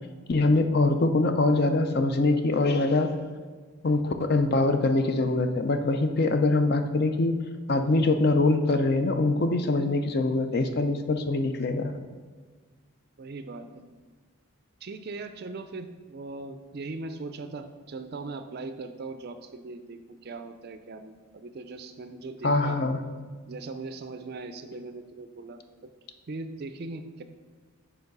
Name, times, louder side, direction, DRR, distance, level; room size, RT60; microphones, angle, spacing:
voice 1, 0.3-3.1 3.8-7.4 7.7-11.9 22.4-23.0, left 2 dB, 45° left, 7 dB, 0.5 m, -23 dB
voice 2, 13.2-13.9 14.8-22.8 23.5-25.6 26.3-27.2, right 3 dB, 45° right, 9 dB, 0.4 m, -39 dB
5.9 x 4.6 x 5.4 m, 1.5 s
head